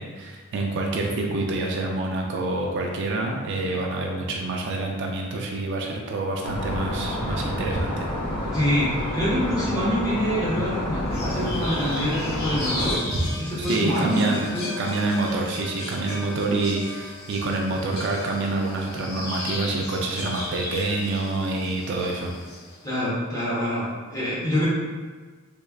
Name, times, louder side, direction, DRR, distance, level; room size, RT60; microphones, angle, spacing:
voice 1, 0.0-8.1 12.0-12.1 13.1-13.3 13.6-14.5 14.8-22.3, right 2 dB, 55° right, 0 dB, 0.4 m, -27 dB
sound 1, 6.4-13.0, left 1 dB, 85° left, 0.7 m, -29 dB
voice 2, 8.5-13.0 13.3-14.2 14.5-14.7 22.8-24.7, equal, 15° left, -9 dB, 1.1 m, -26 dB
sound 2, 11.1-22.8, left 2 dB, 50° left, 1.0 m, -35 dB
3.5 x 3.2 x 2.3 m, 1.4 s
head